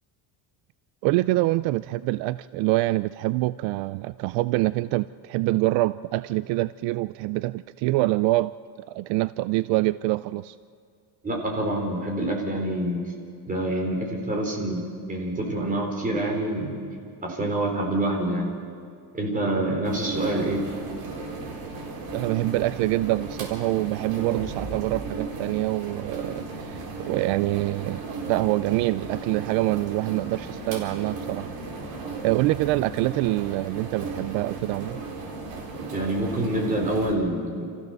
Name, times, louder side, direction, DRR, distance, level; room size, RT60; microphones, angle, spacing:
voice 1, 1.0-8.6 8.9-10.6 22.1-31.5 32.2-35.0, right 18 dB, 80° right, 16 dB, 0.5 m, -25 dB
voice 2, 11.2-13.0 13.5-16.8 17.2-18.5 19.1-20.6 35.9-37.6, right 1 dB, 20° right, 0 dB, 4.2 m, -26 dB
sound 1, 19.8-37.1, right 3 dB, 55° right, 4.4 m, -35 dB
29.0 x 15.0 x 6.8 m, 2.3 s
cardioid pair, 165°, 44 cm